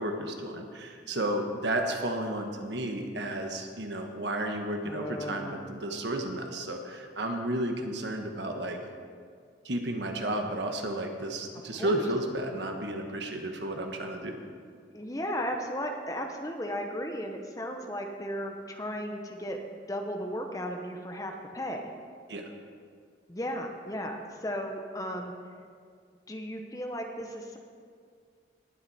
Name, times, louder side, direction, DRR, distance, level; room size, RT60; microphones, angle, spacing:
voice 1, 0.0-8.8 9.6-14.4 22.3-22.5, right 1 dB, 75° right, 4 dB, 1.3 m, -32 dB
voice 2, 4.8-5.8 11.8-12.0 14.9-19.6 19.9-21.9 23.3-25.3 26.3-27.6, equal, 20° left, 4 dB, 0.9 m, -35 dB
19.0 x 7.8 x 4.3 m, 2.1 s
head